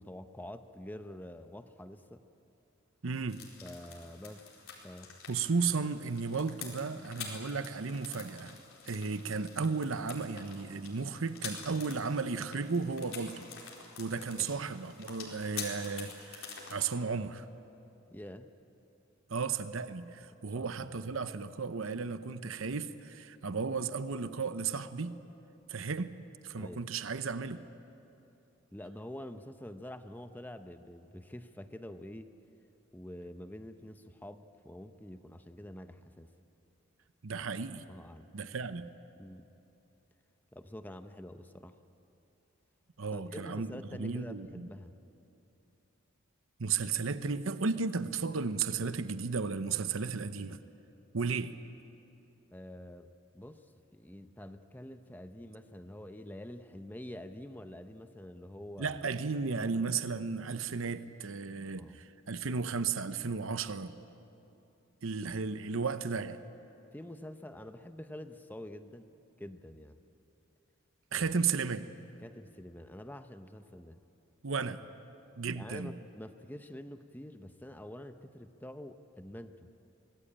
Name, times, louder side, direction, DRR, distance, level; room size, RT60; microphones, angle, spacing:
voice 1, 0.0-2.2 3.6-4.5 4.8-5.1 14.3-14.5 18.1-18.5 20.5-21.0 26.5-26.8 28.7-32.3 32.9-36.3 37.9-38.3 39.2-39.5 40.5-41.8 43.1-44.9 52.5-53.6 53.9-59.0 61.8-62.0 66.9-69.1 69.4-70.0 71.2-71.3 72.2-74.0 75.5-79.7, left 1 dB, 10° left, 9 dB, 0.7 m, -47 dB
voice 2, 3.0-3.4 5.3-8.6 8.9-13.5 14.0-17.5 19.3-25.2 25.7-26.2 26.4-27.6 37.2-37.9 38.3-38.9 43.0-43.7 44.0-44.7 46.6-50.6 51.1-51.5 58.8-63.9 65.0-66.4 71.1-71.9 74.4-74.8 75.4-75.9, right 5 dB, 70° right, 11 dB, 0.8 m, -34 dB
sound 1, 3.3-16.8, left 6 dB, 70° left, 4.5 m, -47 dB
24.5 x 19.5 x 8.7 m, 2.9 s
head